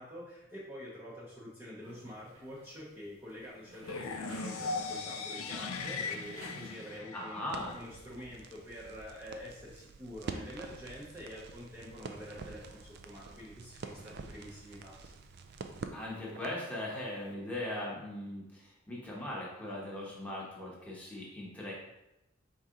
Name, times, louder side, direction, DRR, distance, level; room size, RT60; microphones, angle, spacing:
voice 1, 0.0-7.4 7.7-15.1, equal, 10° right, -8 dB, 0.7 m, -47 dB
sound 1, 1.8-7.0, right 1 dB, 80° right, 1.0 m, -54 dB
sound 2, 3.8-7.8, left 4 dB, 90° left, 0.4 m, -38 dB
voice 2, 7.1-7.8 15.9-21.7, left 1 dB, 5° left, -5 dB, 1.0 m, -39 dB
Crackle, 7.5-16.7, right 4 dB, 50° right, 0.3 m, -47 dB
4.6 x 2.8 x 3.7 m, 0.90 s
head